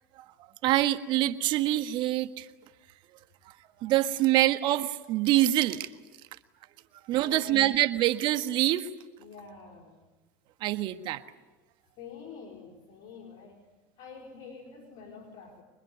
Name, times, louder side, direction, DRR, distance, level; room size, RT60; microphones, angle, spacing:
voice 1, 0.6-2.5 3.8-5.9 7.1-8.9 10.6-11.2, right 14 dB, 55° right, 10 dB, 1.5 m, -25 dB
voice 2, 7.2-7.8 9.2-10.0 12.0-15.6, left 5 dB, 55° left, 1 dB, 4.4 m, -47 dB
25.0 x 22.0 x 9.4 m, 1.2 s
supercardioid pair, 100°, 9 cm